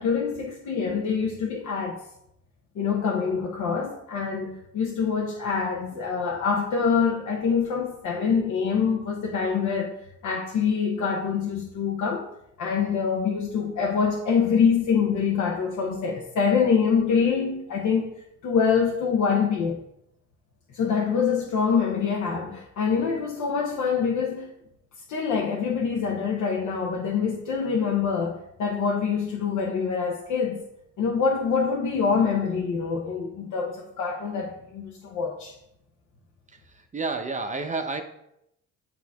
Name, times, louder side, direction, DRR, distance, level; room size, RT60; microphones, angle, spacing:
voice 1, 0.0-2.0 2.7-9.9 10.2-12.3 12.6-18.1 18.4-19.8 20.7-24.5 25.1-30.6 31.0-35.5, left 6 dB, 75° left, -1 dB, 1.0 m, -25 dB
voice 2, 36.5-38.0, right 3 dB, 25° right, 5 dB, 0.8 m, -31 dB
8.5 x 3.0 x 4.8 m, 0.78 s
cardioid pair, 90°, 30 cm